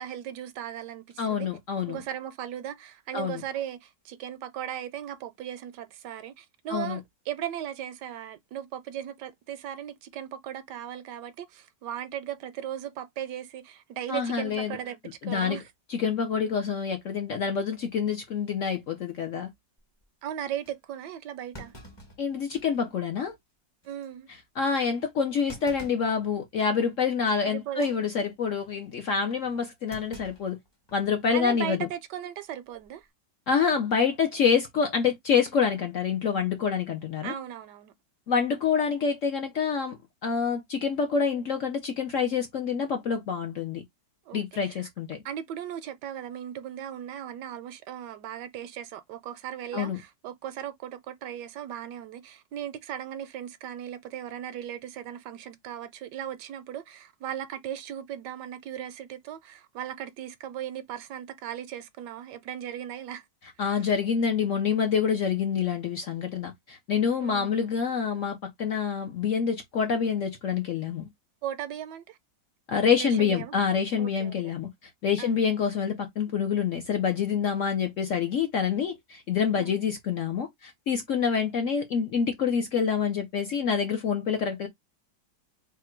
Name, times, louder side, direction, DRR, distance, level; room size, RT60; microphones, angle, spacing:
voice 1, 0.0-1.5 1.9-7.0 7.3-15.7 20.2-21.7 23.8-24.3 27.4-27.9 31.3-33.1 37.2-37.9 44.3-44.8 45.2-63.2 67.2-67.5 71.4-72.2 73.0-73.6 74.0-74.5 75.2-75.5 79.6-79.7 81.1-81.2, right 10 dB, 75° right, 1.1 m, -37 dB
voice 2, 1.2-2.0 3.1-3.4 6.7-7.0 14.1-14.8 15.2-15.6 15.9-19.5 22.2-23.3 24.3-30.6 30.9-31.9 33.5-37.3 38.3-43.8 44.3-45.2 49.7-50.0 63.6-71.1 72.7-84.7, left 6 dB, 65° left, 0.8 m, -27 dB
Thump thud, 19.8-20.1 20.6-20.8 21.5-22.9 23.3-23.4 23.8-24.1 25.5-26.2 26.6-26.9 27.7-28.0 29.9-31.1 31.4-31.5 32.7-33.0, equal, 25° left, 0.6 m, -48 dB
3.7 x 2.1 x 4.3 m
omnidirectional pair, 2.0 m